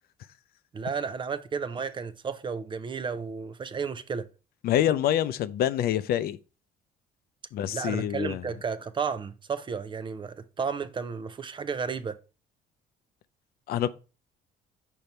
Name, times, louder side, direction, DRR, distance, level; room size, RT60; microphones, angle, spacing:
voice 1, 0.7-4.3 7.7-12.2, right 5 dB, 30° right, 0.5 m, -33 dB
voice 2, 4.6-6.4 7.5-8.4 13.7-13.9, left 11 dB, 65° left, 0.5 m, -26 dB
5.2 x 4.6 x 4.2 m
cardioid pair, 110°, 17 cm